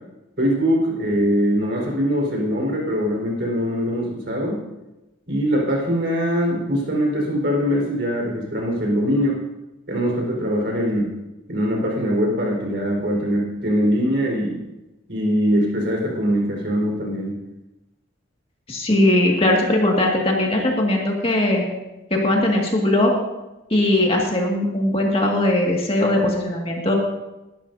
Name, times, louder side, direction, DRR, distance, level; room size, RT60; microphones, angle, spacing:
voice 1, 0.4-4.6 5.3-9.4 9.9-11.1 11.5-14.6 15.1-17.3, equal, 55° right, -2 dB, 4.6 m, -22 dB
voice 2, 18.7-21.6 22.1-23.1 23.7-26.9, left 1 dB, 30° left, -1 dB, 2.0 m, -19 dB
20.5 x 12.0 x 2.8 m, 1.0 s
head